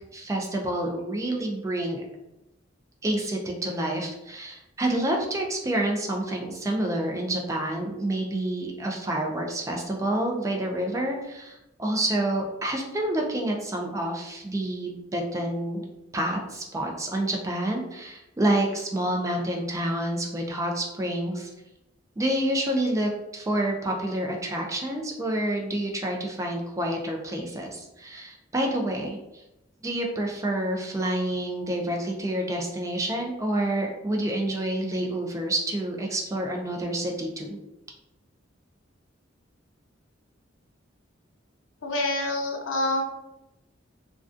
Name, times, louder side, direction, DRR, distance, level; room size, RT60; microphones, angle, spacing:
voice 1, 0.1-2.0 3.0-15.8 16.1-21.5 22.2-29.2 29.8-37.6, right 1 dB, 15° right, 1 dB, 0.3 m, -28 dB
voice 2, 41.8-43.0, left 1 dB, 85° left, 1 dB, 0.5 m, -26 dB
2.3 x 2.3 x 2.5 m, 0.91 s
head